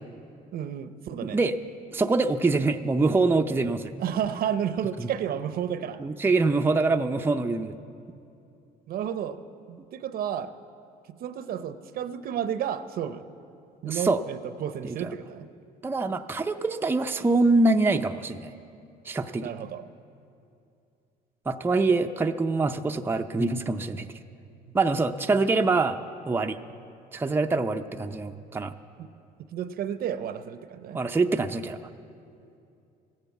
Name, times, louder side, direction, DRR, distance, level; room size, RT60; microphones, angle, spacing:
voice 1, 0.5-1.4 4.0-6.0 8.9-9.4 9.7-10.5 11.2-13.2 13.8-15.5 19.4-19.9 29.0-29.1 29.5-31.0, right 9 dB, 60° right, 12 dB, 0.7 m, -31 dB
voice 2, 1.2-1.5 1.9-3.9 5.0-5.1 6.0-7.8 13.8-14.2 14.8-15.1 15.8-18.5 19.1-19.5 21.5-24.1 24.7-26.0 26.3-26.6 27.1-28.7 30.9-31.8, right 3 dB, 15° right, 6 dB, 0.5 m, -24 dB
15.5 x 10.5 x 8.3 m, 2.6 s
cardioid pair, 110°, 17 cm